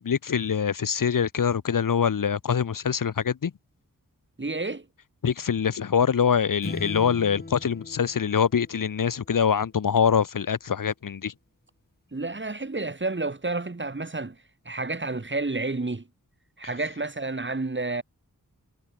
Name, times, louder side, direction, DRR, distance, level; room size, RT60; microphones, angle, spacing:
voice 1, 0.0-3.5 5.2-11.3, left 7 dB, 70° left, 1.2 m, -24 dB
voice 2, 4.4-4.8 12.1-14.4 14.6-16.0 16.6-18.0, right 3 dB, 35° right, 6.3 m, -30 dB
sound 1, 6.6-9.3, left 2 dB, 30° left, 4.7 m, -38 dB
wide cardioid pair, 105°, 34 cm